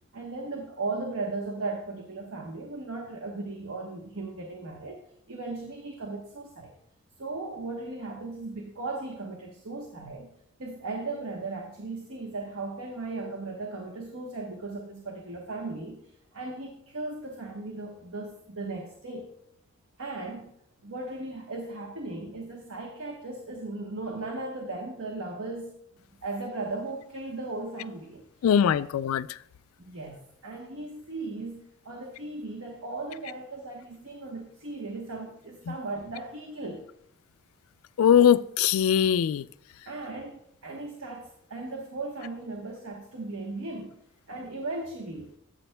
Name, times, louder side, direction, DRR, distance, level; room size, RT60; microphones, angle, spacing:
voice 1, 0.1-5.0 5.3-6.7 7.2-10.3 10.6-19.3 20.0-20.5 20.8-25.7 26.2-28.2 29.8-36.9 39.9-40.3 40.6-43.9 44.3-45.3, right 3 dB, 80° right, 1 dB, 1.1 m, -37 dB
voice 2, 28.4-29.4 35.7-35.8 38.0-39.5, left 8 dB, 85° left, 17 dB, 0.3 m, -21 dB
13.5 x 7.6 x 2.2 m, 0.74 s
head